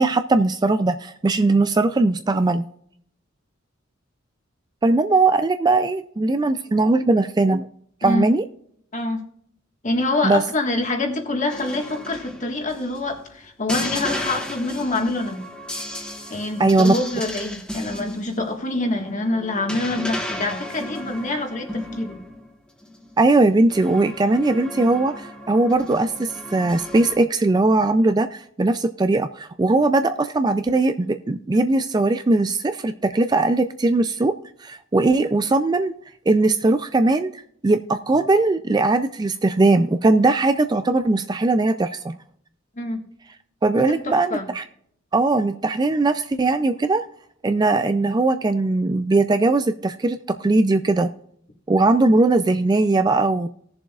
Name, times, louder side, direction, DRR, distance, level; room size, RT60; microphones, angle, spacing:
voice 1, 0.0-2.7 4.8-7.7 8.0-8.4 10.2-10.4 16.6-16.9 23.2-34.3 34.6-35.9 36.3-42.2 43.6-44.6 45.1-47.0 47.4-51.1 51.7-53.5, right 2 dB, 20° right, 9 dB, 0.3 m, -19 dB
voice 2, 8.9-9.2 9.8-15.4 16.3-22.2 42.8-43.0 43.8-44.5, left 2 dB, 35° left, 4 dB, 1.6 m, -26 dB
sound 1, 11.5-13.2 13.7-22.5 22.8-23.2 23.7-27.2, left 1 dB, 5° left, 1.4 m, -34 dB
19.0 x 7.0 x 2.4 m, 0.67 s
head